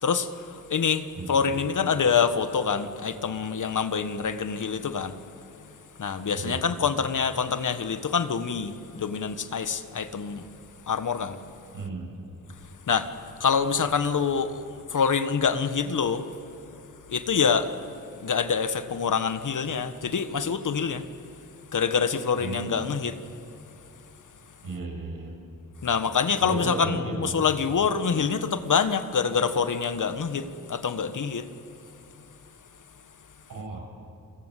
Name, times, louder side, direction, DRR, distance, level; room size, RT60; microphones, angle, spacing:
voice 1, 0.0-5.1 6.0-10.5 10.9-11.4 12.9-13.1 13.4-14.6 14.9-16.2 17.1-17.7 18.2-21.0 21.7-23.2 25.8-31.5, left 6 dB, 65° left, 1.5 m, -26 dB
voice 2, 1.2-1.6 6.3-6.6 11.7-12.1 22.4-23.0 24.6-25.3 26.4-27.4 33.5-33.8, right 3 dB, 75° right, 7.8 m, -34 dB
29.5 x 23.0 x 8.3 m
cardioid pair, 75°, 33 cm